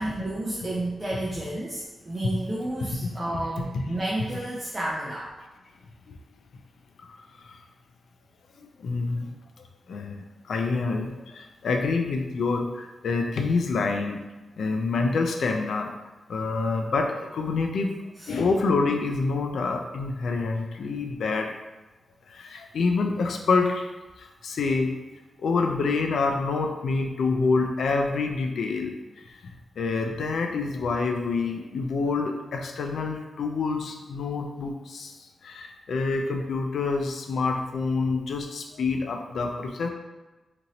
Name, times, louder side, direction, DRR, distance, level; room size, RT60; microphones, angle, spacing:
voice 1, 0.0-5.3 18.2-18.3, right 1 dB, 25° right, -5 dB, 0.4 m, -31 dB
voice 2, 3.6-3.9 6.1-6.2 7.4-7.6 8.6-9.3 9.9-14.2 14.6-15.9 16.3-17.9 18.3-21.5 22.3-23.9 24.2-24.9 25.4-39.9, left 4 dB, 75° left, 4 dB, 0.4 m, -27 dB
2.9 x 2.6 x 2.7 m, 1.2 s
wide cardioid pair, 130°, 0 cm